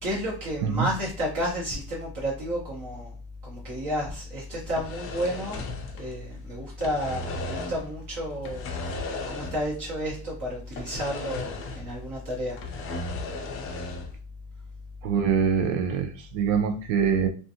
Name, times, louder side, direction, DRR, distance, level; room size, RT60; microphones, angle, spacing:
voice 1, 0.0-3.1 3.4-5.6 5.9-8.7 9.3-12.6, equal, 45° right, 1.0 m, -31 dB
sound 1, 4.6-6.4 6.7-7.9 8.4-9.8 10.1-10.2 10.8-12.0 12.3-14.2, left 2 dB, 35° left, 0.4 m, -35 dB
voice 2, 15.0-17.3, right 7 dB, 75° right, 0.7 m, -24 dB
2.5 x 2.4 x 2.7 m
cardioid pair, 145°, 41 cm